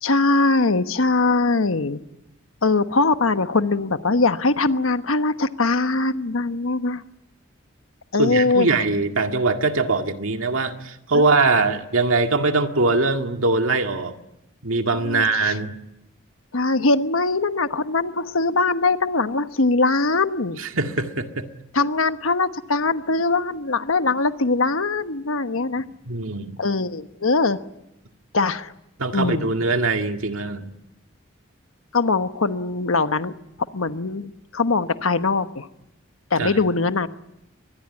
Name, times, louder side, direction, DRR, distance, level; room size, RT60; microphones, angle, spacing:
voice 1, 0.0-2.0 2.6-7.0 8.1-8.7 11.1-11.2 15.0-15.6 16.5-20.6 21.7-25.8 26.6-27.6 28.3-28.7 29.1-29.6 31.9-33.3 33.7-35.7 36.3-37.1, left 3 dB, 90° left, 10 dB, 1.2 m, -21 dB
voice 2, 8.2-14.1 14.6-15.7 20.6-21.5 26.1-26.6 29.0-30.7 36.4-36.6, right 3 dB, 85° right, 5 dB, 2.0 m, -22 dB
24.0 x 20.5 x 9.8 m, 0.88 s
head